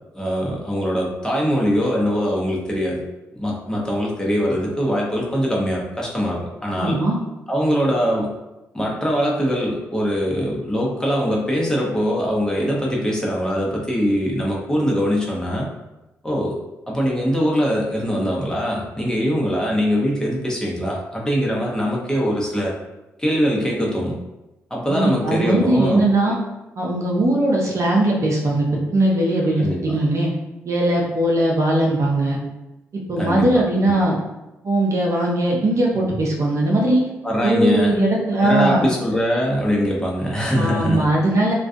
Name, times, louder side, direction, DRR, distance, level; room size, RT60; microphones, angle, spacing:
voice 1, 0.1-3.0 3.3-7.0 7.5-8.3 8.7-15.7 16.2-16.6 16.9-22.8 23.2-24.2 24.7-26.3 29.6-30.0 33.2-33.5 37.2-38.0 38.4-41.1, equal, 10° left, -3 dB, 0.8 m, -22 dB
voice 2, 6.8-7.2 24.9-26.4 26.8-30.3 30.6-32.4 32.9-34.2 34.6-37.0 37.4-38.9 40.6-41.5, right 1 dB, 55° right, -2 dB, 0.6 m, -19 dB
2.3 x 2.2 x 2.6 m, 1.0 s
hypercardioid pair, 45°, 6 cm